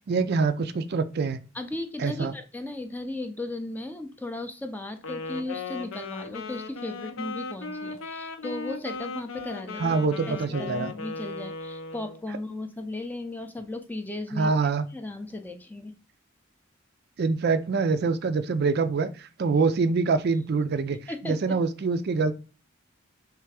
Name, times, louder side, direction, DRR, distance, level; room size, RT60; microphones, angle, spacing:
voice 1, 0.1-1.4 2.0-2.3 9.8-10.9 14.3-14.8 17.2-21.0 21.2-22.3, right 4 dB, 55° right, 11 dB, 0.4 m, -25 dB
voice 2, 1.5-9.9 10.3-14.5 14.9-15.9 21.1-21.3, left 2 dB, 10° left, 6 dB, 0.4 m, -36 dB
Wind instrument woodwind instrument, 5.0-12.2, left 4 dB, 85° left, 0.6 m, -37 dB
3.3 x 3.3 x 4.8 m, 0.34 s
head